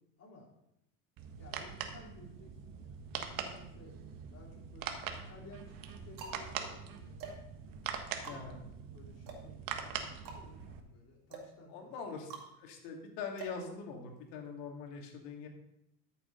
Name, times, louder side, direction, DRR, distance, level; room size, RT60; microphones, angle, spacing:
voice 1, 0.2-0.5 1.4-7.2 8.2-8.6 8.9-12.0, left 2 dB, 30° left, -3 dB, 4.1 m, -56 dB
sound 1, 1.2-10.8, right 7 dB, 40° right, 1.4 m, -43 dB
sound 2, 4.2-4.9 5.6-14.4, right 4 dB, 85° right, 2.4 m, -50 dB
voice 2, 8.2-8.6 11.7-12.3 12.6-15.5, left 5 dB, 70° left, 2 dB, 2.6 m, -43 dB
13.0 x 7.2 x 3.9 m, 0.82 s
supercardioid pair, 105°, 50 cm